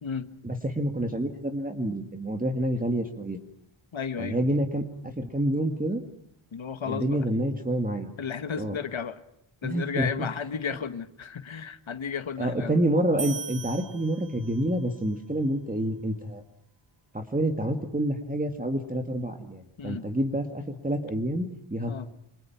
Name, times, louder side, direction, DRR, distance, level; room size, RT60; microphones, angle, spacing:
voice 1, 0.4-3.4 4.2-6.0 6.9-8.1 8.6-8.8 9.6-10.3 12.4-16.4 17.1-22.0, right 1 dB, 15° right, 5 dB, 2.1 m, -28 dB
voice 2, 3.9-4.4 6.5-7.3 8.2-9.2 9.6-12.9 19.8-20.1 21.9-22.0, left 6 dB, 70° left, 10 dB, 1.8 m, -33 dB
sound 1, 13.2-14.8, right 6 dB, 40° right, 0.9 m, -39 dB
29.5 x 27.0 x 5.9 m, 0.73 s
wide cardioid pair, 135°, 49 cm